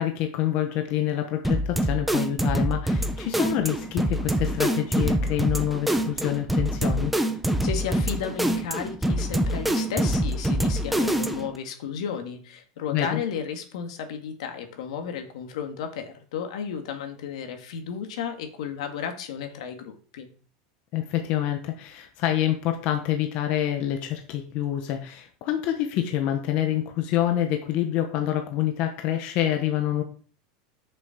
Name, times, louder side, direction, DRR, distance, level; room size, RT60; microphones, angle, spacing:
voice 1, 0.0-7.1 12.9-13.2 20.9-30.0, left 11 dB, 40° left, 5 dB, 1.1 m, -27 dB
sound 1, 1.4-11.6, right 1 dB, ahead, 0.7 m, -25 dB
voice 2, 7.6-20.3, left 7 dB, 80° left, 5 dB, 1.9 m, -33 dB
7.0 x 6.8 x 5.1 m, 0.42 s
supercardioid pair, 165°, 3 cm